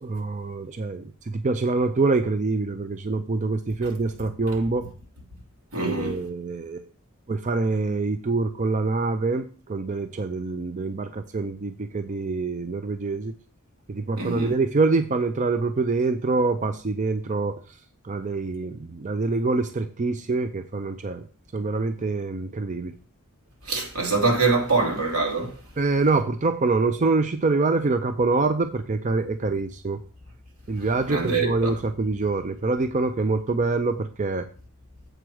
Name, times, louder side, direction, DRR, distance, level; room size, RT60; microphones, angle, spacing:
voice 1, 0.0-4.8 5.8-6.8 7.3-13.3 13.9-17.6 18.0-21.2 21.5-22.9 25.8-30.0 30.7-34.5, right 3 dB, 35° right, 0.5 m, -25 dB
voice 2, 5.7-6.2 14.2-14.5 23.6-25.6 31.1-31.7, right 3 dB, 90° right, 3.1 m, -24 dB
7.9 x 4.7 x 6.2 m
head